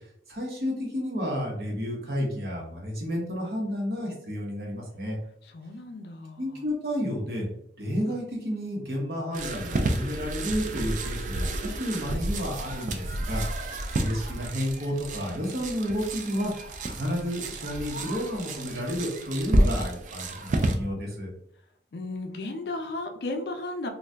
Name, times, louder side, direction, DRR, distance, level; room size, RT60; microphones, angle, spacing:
voice 1, 0.3-5.2 6.4-7.5 7.8-21.3, equal, 60° right, -1 dB, 0.9 m, -31 dB
voice 2, 5.4-6.6 21.9-23.9, left 2 dB, 70° left, 4 dB, 0.5 m, -35 dB
sound 1, 9.3-20.8, right 1 dB, 45° right, 0.3 m, -30 dB
2.6 x 2.3 x 3.3 m, 0.72 s
head